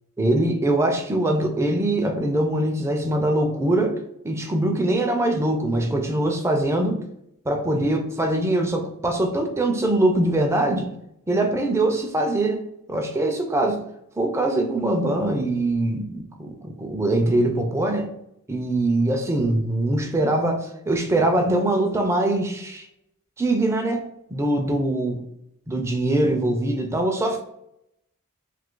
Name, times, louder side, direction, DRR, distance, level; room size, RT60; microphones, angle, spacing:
voice 1, 0.2-4.0 4.2-7.0 7.5-10.9 11.3-12.6 12.9-13.8 14.2-18.1 18.5-22.9 23.4-24.0 24.3-25.2 25.7-27.4, right 1 dB, 10° right, 3 dB, 0.3 m, -22 dB
2.7 x 2.4 x 3.6 m, 0.79 s
head